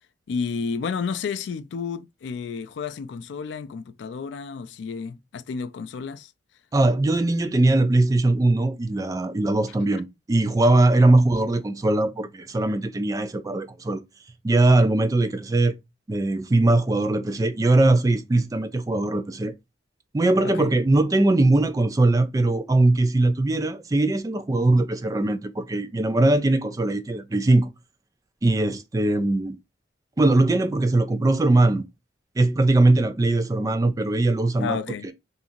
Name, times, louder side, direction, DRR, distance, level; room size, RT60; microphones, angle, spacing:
voice 1, 0.3-6.3 20.4-20.8 34.6-35.1, left 5 dB, 70° left, 0.3 m, -31 dB
voice 2, 6.7-14.0 14.4-15.7 16.1-19.5 20.1-27.7 28.4-29.6 30.2-31.8 32.4-34.8 35.0-35.1, right 2 dB, 20° right, 0.3 m, -21 dB
2.8 x 2.4 x 2.5 m
head